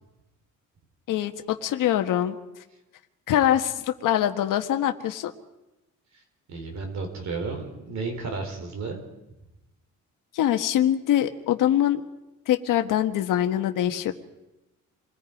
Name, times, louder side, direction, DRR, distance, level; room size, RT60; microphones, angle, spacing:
voice 1, 1.1-2.4 3.3-5.3 10.3-12.0 12.5-14.1, left 11 dB, 75° left, 6 dB, 1.5 m, -23 dB
voice 2, 6.5-9.0, right 4 dB, 55° right, 4 dB, 4.2 m, -33 dB
28.5 x 21.0 x 5.2 m, 0.98 s
cardioid pair, 165°, 32 cm